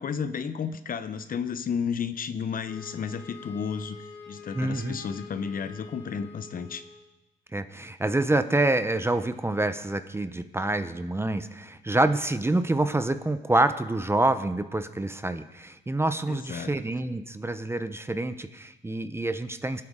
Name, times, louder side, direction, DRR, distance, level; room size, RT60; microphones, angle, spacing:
voice 1, 0.0-6.8 16.3-16.7, left 6 dB, 45° left, 11 dB, 0.7 m, -32 dB
Wind instrument woodwind instrument, 2.7-7.1, left 4 dB, 65° left, 1.8 m, -46 dB
voice 2, 4.5-5.0 7.5-19.8, right 2 dB, 10° right, 10 dB, 0.7 m, -27 dB
22.0 x 7.9 x 3.7 m, 1.0 s
cardioid pair, 90°, 20 cm